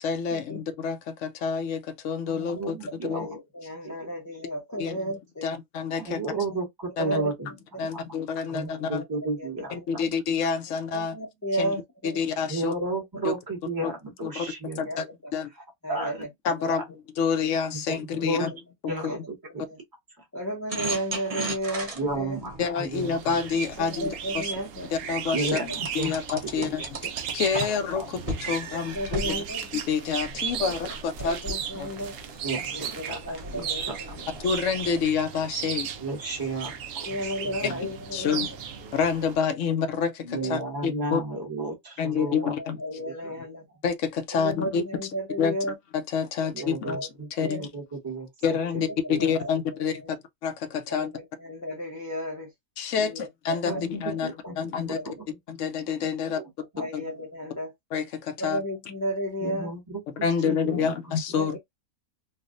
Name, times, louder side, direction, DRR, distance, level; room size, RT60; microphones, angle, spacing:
voice 1, 0.0-2.8 3.0-3.3 4.8-5.0 5.4-6.2 7.0-7.2 7.8-9.0 9.7-11.2 11.6-11.7 12.0-12.7 13.2-13.3 13.8-13.9 14.2-14.5 14.8-15.0 15.3-15.5 16.4-16.8 17.2-18.5 22.6-24.1 24.3-24.5 24.9-25.6 25.9-26.8 27.3-29.3 29.7-31.4 31.8-31.9 34.4-35.9 37.6-37.7 38.1-38.5 38.9-41.2 42.0-42.8 43.8-44.8 45.4-45.5 46.1-47.0 47.3-47.7 48.4-50.2 50.4-51.1 52.8-55.0 55.5-56.4 56.9-57.0 57.9-58.6 60.2-61.6, left 6 dB, 65° left, 0.8 m, -28 dB
voice 2, 2.3-3.3 3.8-3.9 6.0-7.5 7.8-8.0 8.5-10.0 12.4-14.8 15.9-16.1 16.6-16.8 17.7-18.5 18.9-19.6 21.9-23.1 25.3-26.2 26.6-26.9 27.9-28.2 32.4-34.0 36.0-37.8 38.3-38.4 40.2-42.5 46.5-47.3 47.6-48.6 49.1-49.2 53.7-54.7 55.0-55.1 56.4-56.5 56.7-56.9 59.4-61.1, right 2 dB, 15° right, 1.0 m, -33 dB
voice 3, 2.9-5.6 6.3-6.4 7.0-7.3 8.8-8.9 9.4-9.8 10.9-12.2 14.8-16.3 16.6-16.7 18.3-18.6 18.9-19.2 19.6-19.8 20.3-22.4 23.8-24.9 25.5-25.6 27.6-27.7 28.7-29.6 30.6-30.8 31.2-32.1 32.7-34.3 37.1-38.6 40.4-40.5 42.1-43.6 44.3-45.7 46.6-47.1 47.4-47.6 48.6-48.8 49.2-50.1 50.9-52.5 52.9-53.8 54.1-54.5 54.9-55.1 56.2-56.3 56.8-57.7 58.4-59.7 60.4-60.9 61.3-61.6, equal, 20° left, 0.5 m, -34 dB
sound 1, 20.7-24.6 25.5-27.9 28.3-28.5 28.9-35.0, right 2 dB, 35° right, 0.6 m, -37 dB
sound 2, 22.9-39.4, right 8 dB, 65° right, 0.9 m, -36 dB
3.4 x 2.4 x 2.4 m
omnidirectional pair, 1.5 m